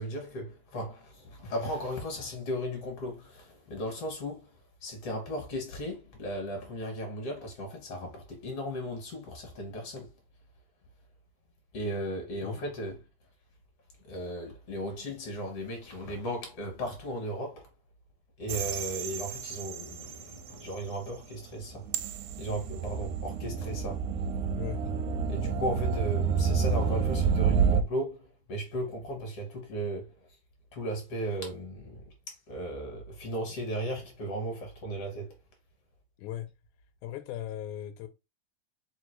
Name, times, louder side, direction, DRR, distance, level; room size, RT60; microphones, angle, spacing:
voice 1, 0.0-4.6 4.8-10.1 11.7-13.0 14.1-17.7 18.4-21.8 22.4-24.0 25.3-28.2 28.5-30.1 30.7-35.3, equal, 60° left, 2.0 m, -36 dB
sound 1, 18.5-20.8 21.7-27.8, right 6 dB, 85° right, 2.0 m, -29 dB
voice 2, 36.2-36.5 37.0-38.1, left 11 dB, 85° left, 2.0 m, -37 dB
4.9 x 2.2 x 4.4 m
omnidirectional pair, 3.4 m